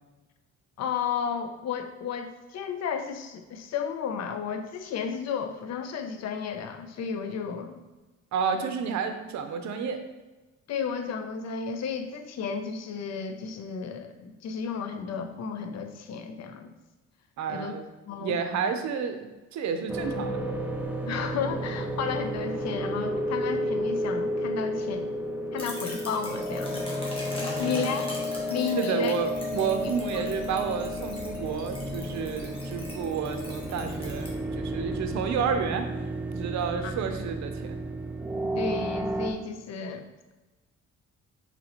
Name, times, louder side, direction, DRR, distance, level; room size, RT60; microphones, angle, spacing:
voice 1, 0.8-7.8 10.7-16.7 17.5-17.7 18.1-18.4 21.1-25.1 25.5-26.8 27.6-28.1 28.5-29.1 30.1-30.2 36.8-36.9 38.5-40.0, left 6 dB, 60° left, 7 dB, 0.6 m, -33 dB
voice 2, 8.3-10.0 17.4-17.8 18.2-20.5 27.4-27.9 28.8-35.9 36.3-37.8, right 6 dB, 65° right, 7 dB, 0.6 m, -30 dB
sound 1, 19.9-39.3, equal, 5° right, 0.4 m, -32 dB
sound 2, 25.6-34.3, left 1 dB, 20° left, 1.4 m, -42 dB
4.3 x 3.9 x 2.9 m, 1.1 s
cardioid pair, 90°, 30 cm